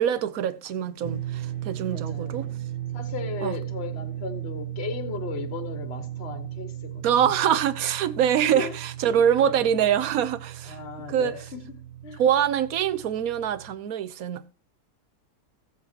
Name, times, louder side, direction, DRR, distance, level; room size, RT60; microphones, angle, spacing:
voice 1, 0.0-2.4 3.4-3.6 7.0-10.8 11.1-11.3 12.2-14.5, right 9 dB, 65° right, 1.3 m, -24 dB
sound 1, 1.0-13.8, right 12 dB, 85° right, 1.8 m, -36 dB
voice 2, 1.9-2.5 2.9-7.0 8.5-8.7 9.4-9.6 10.6-12.2, left 5 dB, 40° left, 1.5 m, -36 dB
18.0 x 7.6 x 2.9 m
omnidirectional pair, 1.7 m